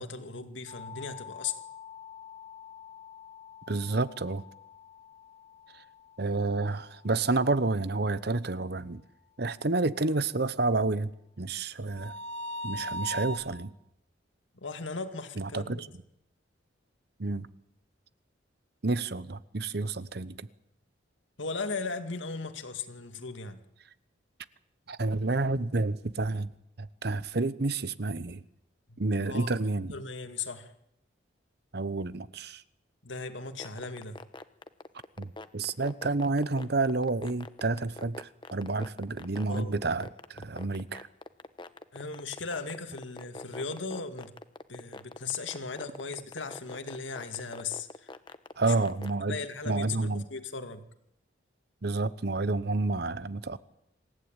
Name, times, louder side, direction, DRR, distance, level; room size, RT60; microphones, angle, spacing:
voice 1, 0.0-1.5 14.5-15.9 21.4-23.6 28.9-29.5 29.9-30.7 33.0-34.2 39.5-39.7 41.9-44.3 44.7-48.1 48.6-48.7 49.2-50.8, left 4 dB, 85° left, 2.2 m, -37 dB
sound 1, 0.7-5.2 11.9-13.4, left 1 dB, 80° right, 4.3 m, -41 dB
voice 2, 3.7-4.4 6.2-9.0 9.4-12.1 12.6-13.7 15.4-15.9 17.2-17.5 18.8-20.4 24.9-26.5 26.8-28.4 29.0-29.9 31.7-32.6 35.2-41.1 48.6-49.4 49.7-50.2 51.8-53.6, right 3 dB, 60° right, 1.0 m, -29 dB
sound 2, 33.5-49.1, left 2 dB, 25° left, 1.0 m, -43 dB
27.0 x 15.0 x 9.0 m
head